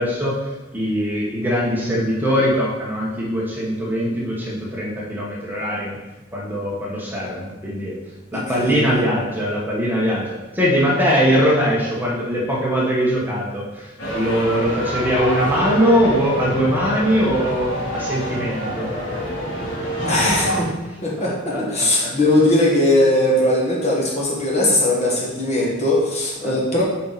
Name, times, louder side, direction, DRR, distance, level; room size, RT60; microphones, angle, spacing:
voice 1, 0.0-6.0 6.3-8.0 8.3-18.9 21.2-21.9 26.4-26.5, equal, 10° right, -5 dB, 1.2 m, -21 dB
voice 2, 8.3-9.0 20.0-20.7 21.0-26.8, left 1 dB, 35° left, -3 dB, 1.6 m, -19 dB
sound 1, 14.0-20.6, equal, 70° left, 2.6 m, -26 dB
8.2 x 4.6 x 4.1 m, 1.1 s
head